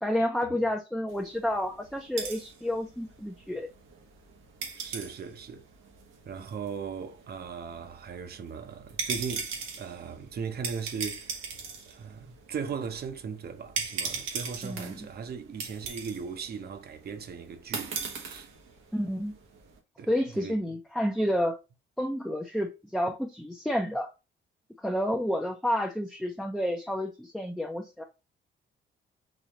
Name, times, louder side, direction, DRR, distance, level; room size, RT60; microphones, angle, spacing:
voice 1, 0.0-3.7 14.6-15.1 18.9-19.3 20.1-21.6 22.0-24.1 24.8-28.0, equal, ahead, 0.5 m, -30 dB
sound 1, 1.1-19.8, right 5 dB, 85° right, 1.1 m, -40 dB
voice 2, 4.8-5.7 6.3-9.5 9.8-11.5 11.9-18.5 20.0-20.7, right 6 dB, 50° right, 0.8 m, -38 dB
4.1 x 2.8 x 2.9 m
cardioid pair, 90°, 20 cm